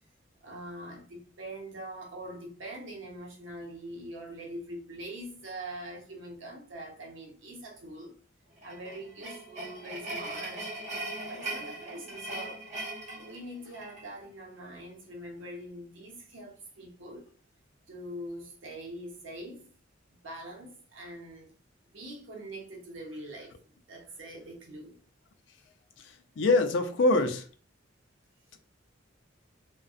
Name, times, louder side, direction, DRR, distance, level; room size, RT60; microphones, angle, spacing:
voice 1, 0.4-8.1 8.6-10.7 11.3-12.6 13.1-17.3 17.9-19.7 20.1-21.5 21.9-25.0, right 1 dB, 75° right, 0.7 m, -43 dB
sound 1, 8.6-14.1, right 2 dB, 35° right, 0.7 m, -39 dB
voice 2, 26.4-27.4, left 2 dB, 65° left, 0.4 m, -23 dB
2.6 x 2.2 x 2.4 m
head